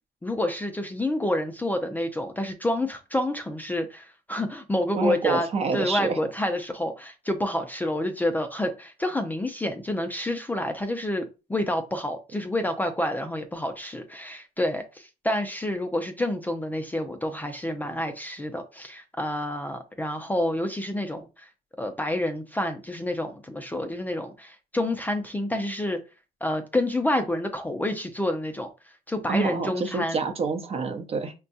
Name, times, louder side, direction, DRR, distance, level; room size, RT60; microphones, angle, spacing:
voice 1, 0.2-5.5 5.7-21.5 21.8-26.0 26.4-28.7 29.1-30.2, left 1 dB, 10° left, 0.4 m, -28 dB
voice 2, 4.9-6.2 29.3-31.3, right 4 dB, 35° right, 0.7 m, -27 dB
5.1 x 2.3 x 2.6 m
cardioid pair, 110°, 17 cm